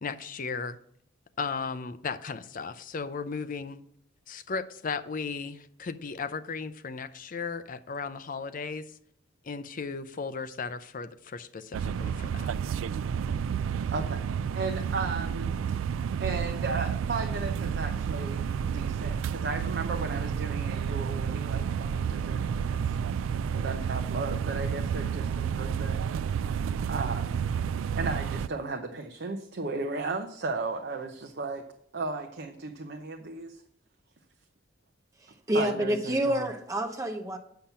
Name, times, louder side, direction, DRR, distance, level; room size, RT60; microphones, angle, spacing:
voice 1, 0.0-0.8 1.4-3.8 4.3-8.9 9.4-12.5, left 5 dB, 45° left, 12 dB, 0.5 m, -36 dB
sound 1, 11.7-28.5, right 7 dB, 85° right, 0.3 m, -30 dB
voice 2, 14.6-15.5 16.2-22.8 23.5-26.0 26.9-27.5 28.0-31.6 31.9-33.6 35.5-36.5, right 3 dB, 55° right, 4 dB, 0.7 m, -35 dB
voice 3, 35.5-37.4, right 1 dB, 15° right, 3 dB, 1.0 m, -28 dB
8.6 x 5.8 x 5.6 m, 0.70 s
head